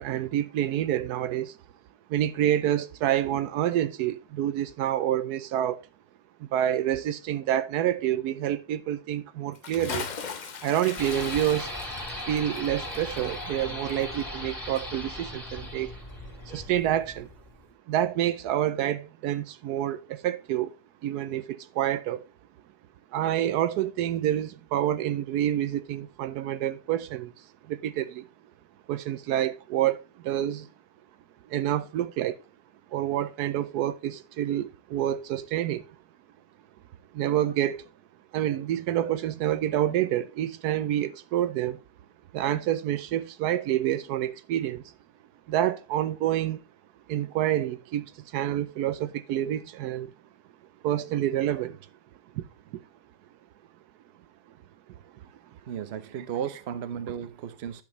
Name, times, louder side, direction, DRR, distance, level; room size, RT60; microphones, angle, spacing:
voice 1, 0.0-1.6 2.1-5.8 6.4-10.1 10.6-11.7 12.2-15.9 16.5-17.3 17.9-20.8 21.0-22.2 23.1-27.3 27.6-28.3 28.9-30.7 31.5-32.4 32.9-35.9 37.1-37.8 38.3-41.8 42.3-44.8 45.5-46.6 47.1-50.1 50.8-51.8 52.3-52.4, right 11 dB, 85° right, 1.1 m, -28 dB
Bathtub (filling or washing) / Splash splatter, 9.5-14.5 14.8-14.9, left 5 dB, 45° left, 0.6 m, -39 dB
sound 1, 11.0-17.6, left 1 dB, 10° left, 3.1 m, -38 dB
voice 2, 55.7-57.8, right 8 dB, 50° right, 0.9 m, -34 dB
10.5 x 5.9 x 3.1 m
omnidirectional pair, 1.7 m